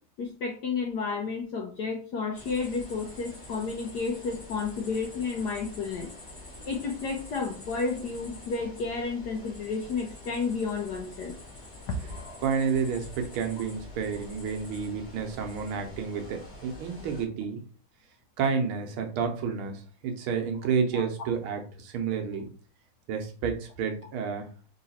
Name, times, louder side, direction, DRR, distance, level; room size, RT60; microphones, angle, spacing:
voice 1, 0.2-6.1 6.7-11.3 11.9-12.2 20.9-21.3, left 4 dB, 70° left, 2 dB, 1.0 m, -31 dB
sound 1, 2.3-17.2, left 1 dB, 10° left, 1.6 m, -46 dB
voice 2, 12.4-17.6 18.4-22.5 23.1-24.5, right 6 dB, 75° right, 4 dB, 1.5 m, -30 dB
3.8 x 3.1 x 4.2 m, 0.40 s
omnidirectional pair, 2.4 m